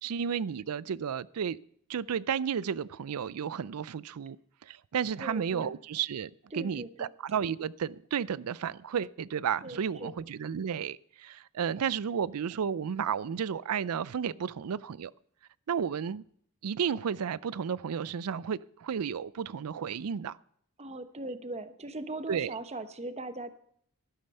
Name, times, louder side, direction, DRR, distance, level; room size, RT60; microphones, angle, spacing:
voice 1, 0.0-1.6 1.9-4.4 4.6-15.1 15.7-16.2 16.6-20.4 22.3-22.5, right 7 dB, 85° right, 0.4 m, -32 dB
voice 2, 5.2-5.8 6.5-7.1 9.6-10.1 20.8-23.5, right 2 dB, 30° right, 1.0 m, -40 dB
12.5 x 11.5 x 5.5 m
head